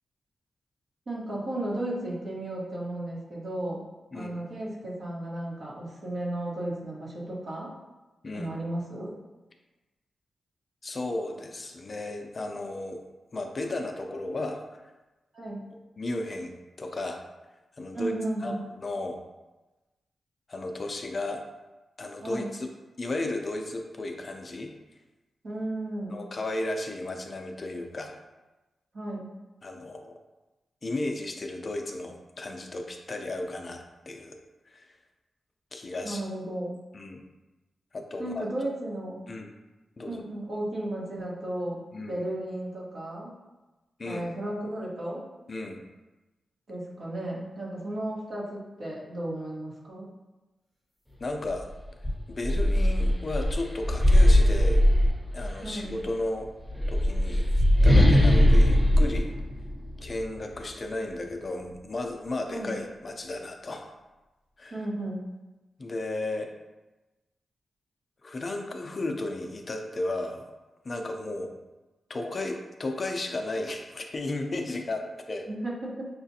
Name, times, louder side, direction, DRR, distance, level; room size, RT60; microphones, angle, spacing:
voice 1, 1.1-3.8 4.1-7.7 8.3-9.1 15.3-15.7 17.9-18.6 22.2-22.5 25.4-26.2 28.9-29.3 36.0-36.8 38.2-39.2 40.1-43.3 44.0-45.2 46.7-50.1 55.6-56.0 62.5-62.8 64.7-65.2 75.5-76.1, right 1 dB, 55° right, -5 dB, 1.2 m, -34 dB
voice 2, 10.8-13.0 13.3-14.8 16.0-16.5 16.8-17.2 17.8-18.1 18.4-19.2 20.5-21.4 22.0-22.7 23.0-24.7 26.1-28.2 29.6-30.1 30.8-34.4 34.7-35.0 35.7-36.2 36.9-37.2 37.9-38.5 39.3-39.5 40.0-40.2 41.9-42.1 44.0-44.2 45.5-45.8 51.2-51.7 52.3-54.8 55.3-56.5 56.9-59.3 60.0-63.9 64.6-64.8 65.8-66.5 68.2-70.5 70.8-71.6 72.1-75.5, left 2 dB, 40° left, 4 dB, 0.4 m, -34 dB
sound 1, 51.5-51.6 52.0-55.7 56.6-60.2, left 1 dB, 5° right, 1.0 m, -20 dB
5.9 x 2.4 x 2.7 m, 1.1 s
wide cardioid pair, 110°, 0 cm